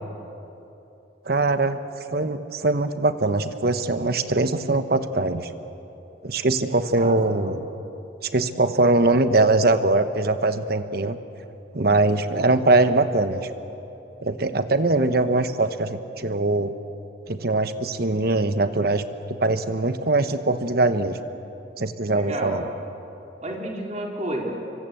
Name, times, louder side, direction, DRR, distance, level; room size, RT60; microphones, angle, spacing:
voice 1, 1.3-1.8 2.1-5.5 6.2-7.6 8.2-11.2 11.7-13.5 14.2-16.7 17.3-21.2 21.8-22.6, right 2 dB, 55° right, 10 dB, 1.1 m, -22 dB
voice 2, 6.9-7.5 22.1-22.6 23.4-24.6, right 1 dB, 40° right, -1 dB, 3.6 m, -31 dB
25.5 x 24.5 x 7.9 m, 3.0 s
head